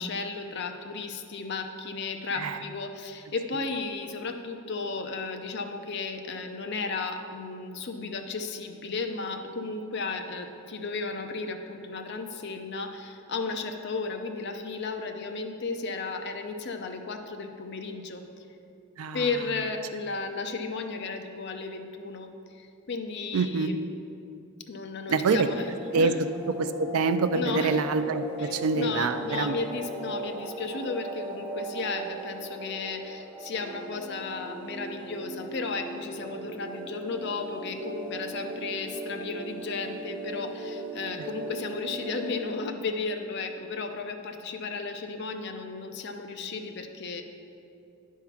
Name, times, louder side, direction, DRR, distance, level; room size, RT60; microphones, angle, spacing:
voice 1, 0.0-18.3 19.1-23.8 24.7-25.6 25.9-26.1 27.3-27.8 28.4-47.2, left 4 dB, 50° left, 5 dB, 0.6 m, -34 dB
voice 2, 19.0-19.3 23.3-23.7 25.1-25.5 25.9-29.5, right 4 dB, 80° right, 11 dB, 0.4 m, -26 dB
sound 1, 25.5-42.5, right 1 dB, 5° right, 0.7 m, -38 dB
9.9 x 3.7 x 5.8 m, 2.6 s
head